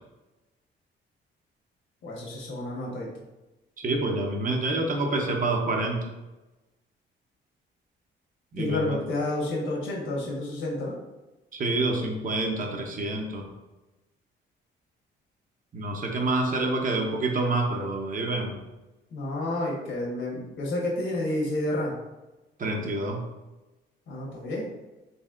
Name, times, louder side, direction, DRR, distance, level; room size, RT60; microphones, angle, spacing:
voice 1, 2.0-3.1 8.6-10.9 19.1-22.0 24.1-24.7, left 1 dB, 75° left, -2 dB, 1.3 m, -30 dB
voice 2, 3.8-6.1 8.5-9.0 11.5-13.5 15.7-18.6 22.6-23.2, right 2 dB, 45° right, 2 dB, 0.8 m, -27 dB
4.1 x 3.4 x 2.4 m, 1.1 s
cardioid pair, 90°, 20 cm